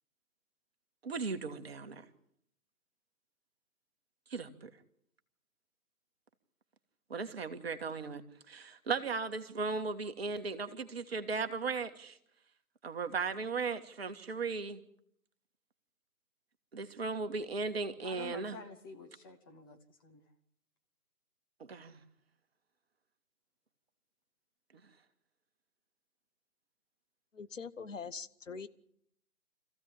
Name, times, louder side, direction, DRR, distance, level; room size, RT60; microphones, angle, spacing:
voice 1, 1.0-2.0 4.3-4.7 7.1-12.2 12.8-14.8 16.7-18.6 21.6-22.0, right 4 dB, 40° right, 7 dB, 1.7 m, -37 dB
voice 2, 18.0-20.3, left 3 dB, 15° left, 3 dB, 1.2 m, -50 dB
voice 3, 27.3-28.7, left 5 dB, 55° left, 12 dB, 1.1 m, -43 dB
26.0 x 15.5 x 8.8 m, 0.71 s
figure-of-eight pair, 145°, 45 cm